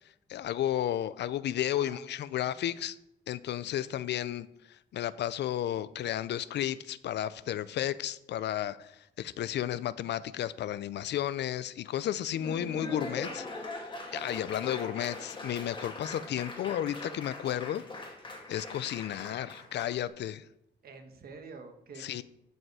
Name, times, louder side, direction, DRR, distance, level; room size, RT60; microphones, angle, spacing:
voice 1, 0.3-3.0 3.3-13.8 14.1-17.8 18.5-20.4 22.0-22.2, left 11 dB, 70° left, 17 dB, 0.5 m, -33 dB
voice 2, 1.8-2.6 20.8-22.2, right 4 dB, 55° right, 6 dB, 1.4 m, -48 dB
Laughter / Applause, 12.1-20.0, left 2 dB, 25° left, 2.1 m, -42 dB
13.5 x 5.3 x 4.8 m, 0.82 s
cardioid pair, 135°, 19 cm